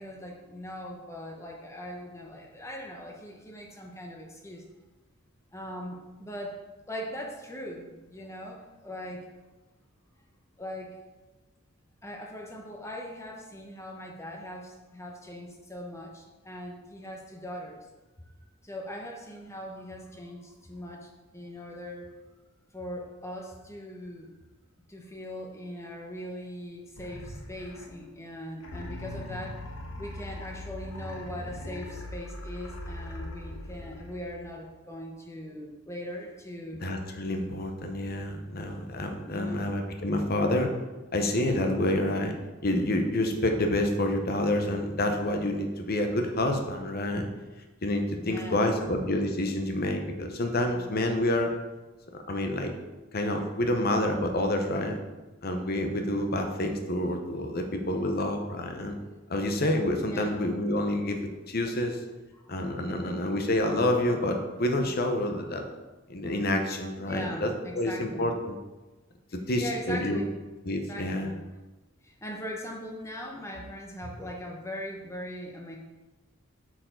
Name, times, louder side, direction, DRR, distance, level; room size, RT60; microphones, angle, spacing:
voice 1, 0.0-4.6 5.5-6.6 6.9-9.2 10.6-10.9 12.0-17.9 18.6-22.1 22.7-24.3 24.9-29.6 30.0-36.8 39.2-39.7 48.2-48.7 60.0-60.3 61.7-61.8 62.3-63.1 66.9-68.3 69.6-70.3 70.9-71.4 72.0-75.8, equal, 15° left, 0 dB, 0.9 m, -40 dB
sound 1, 27.0-28.1 28.6-34.6, left 1 dB, 80° left, 1.0 m, -40 dB
voice 2, 36.8-40.7 41.1-42.3 42.6-47.3 47.8-51.5 52.3-52.7 53.1-55.0 55.4-59.0 59.3-62.0 62.5-65.6 66.1-68.6 69.5-70.2 70.6-71.3, left 1 dB, 50° left, 4 dB, 0.9 m, -28 dB
8.5 x 4.7 x 3.8 m, 1.2 s
head